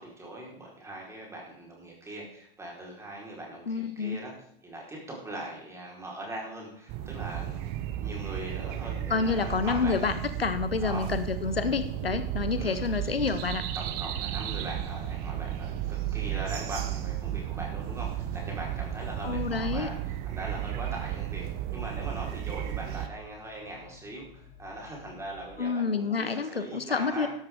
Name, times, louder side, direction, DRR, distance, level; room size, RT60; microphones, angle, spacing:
voice 1, 0.0-4.3 4.6-7.7 8.0-10.1 10.8-11.0 12.6-12.9 13.7-15.7 16.1-27.3, right 1 dB, 10° right, -2 dB, 4.5 m, -40 dB
voice 2, 3.7-4.2 9.1-10.1 10.4-13.6 19.2-19.9 25.6-27.3, left 5 dB, 80° left, 11 dB, 1.0 m, -28 dB
sound 1, 6.9-23.1, right 12 dB, 35° right, 1.0 m, -34 dB
sound 2, 14.6-25.5, left 7 dB, 35° left, 3.9 m, -53 dB
13.0 x 11.5 x 3.7 m, 0.69 s
figure-of-eight pair, 100°, 29 cm